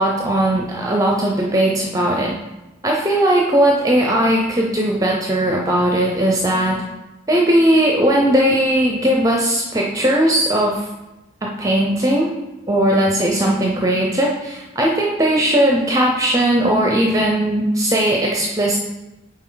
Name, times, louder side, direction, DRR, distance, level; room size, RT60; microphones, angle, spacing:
voice 1, 0.0-2.3 2.8-6.8 7.3-10.9 11.4-12.3 12.7-18.8, right 1 dB, 20° right, -1 dB, 0.6 m, -18 dB
7.9 x 4.5 x 3.9 m, 1.0 s
head